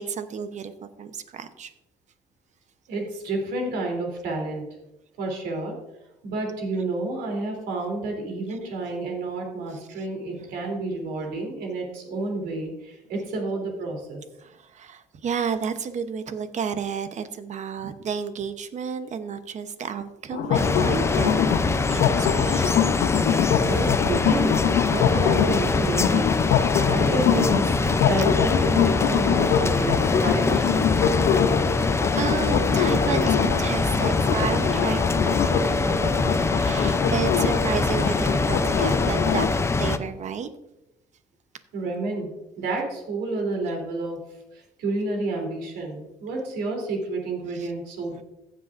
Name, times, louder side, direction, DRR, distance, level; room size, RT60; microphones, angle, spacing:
voice 1, 0.0-1.7 10.4-10.5 14.4-22.8 31.0-31.2 31.8-40.5 47.5-47.7 48.2-48.3, right 7 dB, 45° right, 10 dB, 0.9 m, -32 dB
voice 2, 2.9-4.6 5.2-5.7 6.2-14.2 23.6-24.6 24.9-26.3 26.9-30.0 30.2-30.8 32.0-32.4 33.0-33.1 41.7-42.3 42.6-44.2 44.5-48.2, right 2 dB, 75° right, 1 dB, 3.3 m, -30 dB
sound 1, 20.3-39.5, left 9 dB, 75° left, 0.7 m, -25 dB
sound 2, 20.5-40.0, left 3 dB, 15° left, 0.5 m, -24 dB
15.5 x 7.7 x 2.6 m, 0.89 s
cardioid pair, 110°, 17 cm